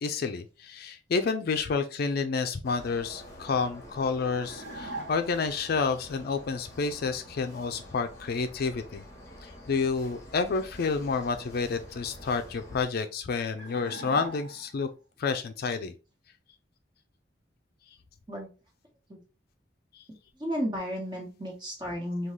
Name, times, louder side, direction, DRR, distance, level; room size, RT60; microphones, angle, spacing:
voice 1, 0.0-9.0 9.4-14.9 15.2-15.9, left 4 dB, 55° left, 8 dB, 0.4 m, -29 dB
sound 1, 2.6-12.8, left 1 dB, 20° left, 1.0 m, -48 dB
sound 2, 4.4-5.5 13.6-14.9, right 2 dB, 70° right, 0.7 m, -40 dB
voice 2, 20.4-22.3, equal, 25° right, -1 dB, 1.3 m, -33 dB
3.7 x 2.3 x 3.1 m, 0.32 s
head